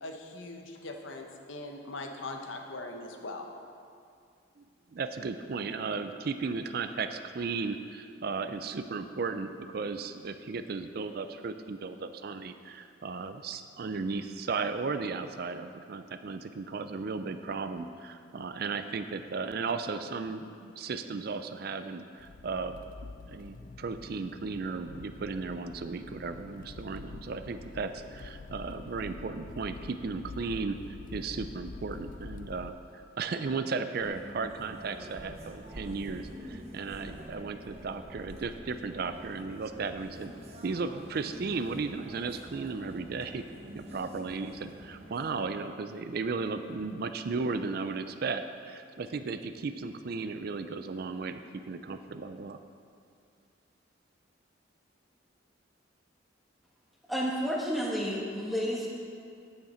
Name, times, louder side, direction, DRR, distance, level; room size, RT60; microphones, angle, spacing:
voice 1, 0.0-3.5, left 2 dB, 80° left, 3 dB, 0.9 m, -41 dB
voice 2, 4.9-30.8 31.1-40.3 40.6-43.5 43.7-52.6, right 4 dB, 55° right, 9 dB, 0.4 m, -35 dB
Accelerating revving vroom, 22.2-32.7, left 3 dB, 45° left, 0.4 m, -46 dB
sound 1, 34.0-45.3, equal, 35° right, 0.9 m, -47 dB
voice 3, 57.1-58.9, equal, ahead, -4 dB, 1.2 m, -31 dB
9.5 x 8.0 x 4.3 m, 2.3 s
head